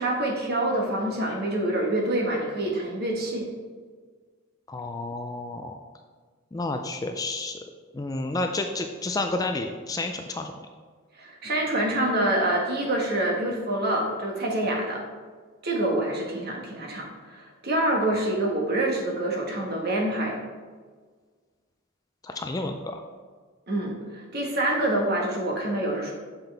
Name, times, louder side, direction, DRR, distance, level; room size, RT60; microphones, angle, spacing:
voice 1, 0.0-3.5 11.2-15.0 15.6-20.4 23.7-26.1, right 1 dB, 50° right, -1 dB, 1.4 m, -26 dB
voice 2, 4.7-5.8 6.5-7.6 7.9-10.5 22.2-23.0, left 2 dB, 15° left, 5 dB, 0.3 m, -30 dB
7.1 x 5.6 x 3.4 m, 1.5 s
head